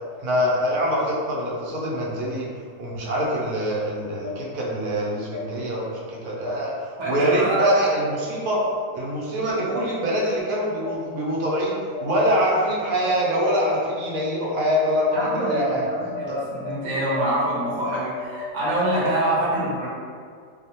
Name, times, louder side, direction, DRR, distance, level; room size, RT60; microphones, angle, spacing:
voice 1, 0.2-2.5 2.8-6.7 7.0-8.6 8.9-11.7 12.0-15.9 16.3-16.4, equal, 85° right, -4 dB, 1.1 m, -24 dB
sound 1, 3.1-3.2 4.2-4.3 5.3-5.4 6.4-6.5 7.5-7.6 8.6-8.7 9.7-9.8 10.8-10.9 11.9-12.0 13.0-13.1 13.6-13.7 14.1-14.2 14.6-14.7 15.1-15.2 15.6-15.7 16.1-16.2 16.6-16.7 17.1-17.2 17.6-18.7, left 7 dB, 85° left, 1.1 m, -33 dB
voice 2, 7.0-7.7 15.1-19.9, right 1 dB, 60° right, -7 dB, 1.0 m, -25 dB
2.7 x 2.0 x 2.7 m, 2.1 s
omnidirectional pair, 1.5 m